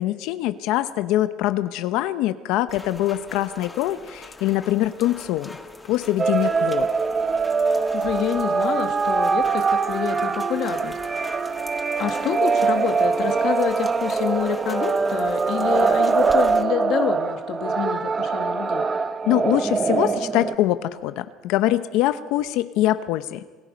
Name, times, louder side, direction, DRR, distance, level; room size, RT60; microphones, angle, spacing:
voice 1, 0.0-5.5 5.9-6.9 19.3-23.4, left 14 dB, 70° left, 12 dB, 0.9 m, -23 dB
Rain, 2.7-16.6, left 2 dB, 10° left, 1.3 m, -42 dB
sound 1, 6.2-20.5, right 5 dB, 20° right, 0.8 m, -23 dB
voice 2, 7.9-11.0 11.3-11.6 12.0-18.9, left 9 dB, 50° left, 6 dB, 1.6 m, -27 dB
27.5 x 18.5 x 5.3 m, 1.3 s
cardioid pair, 140°, 0 cm